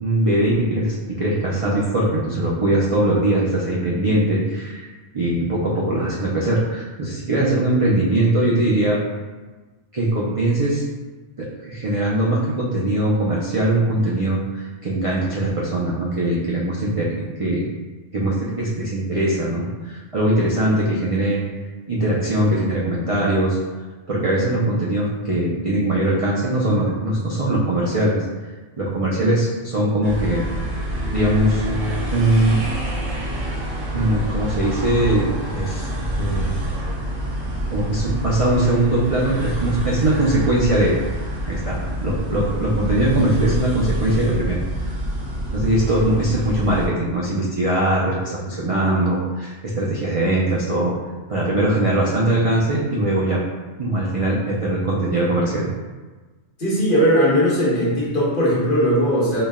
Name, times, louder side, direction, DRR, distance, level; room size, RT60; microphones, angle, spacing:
voice 1, 0.0-4.9 5.1-9.0 9.9-10.8 11.4-17.1 17.4-17.6 18.1-21.4 21.9-23.6 24.1-28.2 28.8-30.4 31.1-31.7 32.1-32.7 33.9-35.9 36.2-36.6 37.7-40.9 41.5-44.9 45.5-50.9 51.3-53.4 53.8-55.7, right 1 dB, 60° right, -5 dB, 0.3 m, -21 dB
sound 1, 30.0-46.9, right 1 dB, 80° right, 1.3 m, -27 dB
voice 2, 56.6-59.4, equal, 45° left, -6 dB, 1.2 m, -18 dB
4.2 x 2.1 x 3.4 m, 1.3 s
omnidirectional pair, 1.3 m